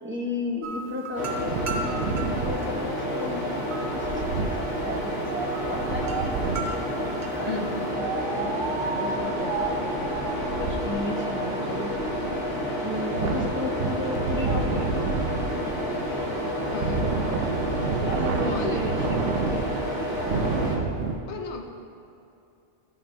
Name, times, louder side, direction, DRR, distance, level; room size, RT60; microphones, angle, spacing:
voice 1, 0.0-4.4 4.7-6.8 7.4-12.0 12.8-14.9 18.0-19.7, left 2 dB, 10° right, -4 dB, 0.6 m, -35 dB
sound 1, 0.6-7.9, right 2 dB, 50° right, 0.6 m, -38 dB
sound 2, 1.2-20.8, equal, 20° left, 1.3 m, -30 dB
Wind, 1.4-6.8 7.9-21.1, right 4 dB, 75° right, 0.9 m, -31 dB
voice 2, 7.5-7.8 16.5-17.1 18.4-18.9 21.3-21.7, left 5 dB, 70° left, 3 dB, 0.9 m, -34 dB
12.5 x 5.8 x 2.2 m, 2.6 s
omnidirectional pair, 1.3 m